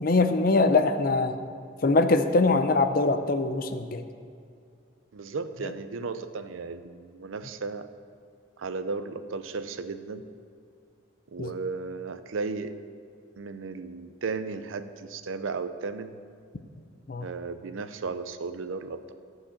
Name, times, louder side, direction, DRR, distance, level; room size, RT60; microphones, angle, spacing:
voice 1, 0.0-1.4 1.8-4.0 11.4-11.5 17.1-17.3, left 3 dB, 45° left, 9 dB, 0.5 m, -23 dB
voice 2, 5.1-7.9 8.6-10.2 11.3-12.8 13.4-16.1 17.2-19.1, right 4 dB, 90° right, 10 dB, 0.6 m, -35 dB
13.5 x 4.8 x 7.1 m, 2.4 s
head